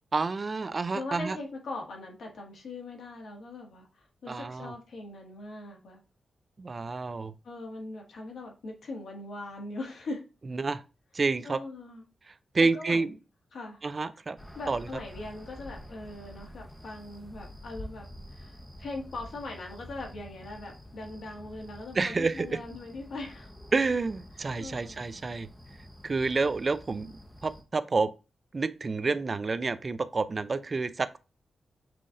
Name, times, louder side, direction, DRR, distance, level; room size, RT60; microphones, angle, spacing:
voice 1, 0.1-1.4 4.3-4.7 6.6-7.3 10.5-10.8 11.1-11.6 12.5-13.1 13.8-14.4 14.7-14.9 21.9-22.6 23.7-25.5 26.0-27.1 27.4-28.1 28.5-31.2, right 3 dB, 35° right, 0.4 m, -29 dB
voice 2, 0.9-6.0 7.4-10.3 11.4-12.0 12.6-13.2 13.5-13.8 14.5-23.5 24.6-25.0, left 2 dB, 75° left, 1.6 m, -41 dB
sound 1, 14.4-27.6, equal, 5° left, 0.7 m, -48 dB
5.8 x 2.5 x 3.7 m
wide cardioid pair, 120°, 0 cm